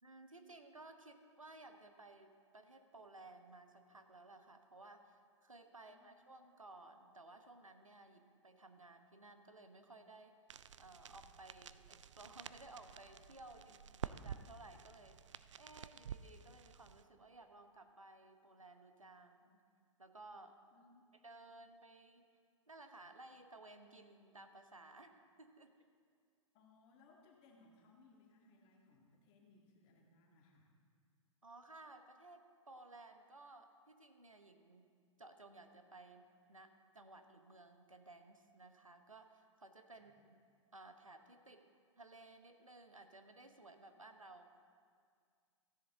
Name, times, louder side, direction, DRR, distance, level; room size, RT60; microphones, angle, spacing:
voice 1, 0.0-10.4 10.8-15.2 15.6-19.6 20.0-20.6 21.1-22.3 22.7-25.7 31.4-34.9 35.2-40.4 40.7-41.7 42.0-44.6, right 2 dB, 85° right, 7 dB, 1.0 m, -58 dB
voice 2, 5.7-6.1 20.7-21.1 26.5-30.7 39.9-40.1, left 3 dB, 35° left, 0 dB, 1.8 m, -67 dB
sound 1, 10.5-17.0, right 8 dB, 65° right, 0.4 m, -51 dB
14.5 x 10.0 x 3.8 m, 2.1 s
figure-of-eight pair, 105°, 17 cm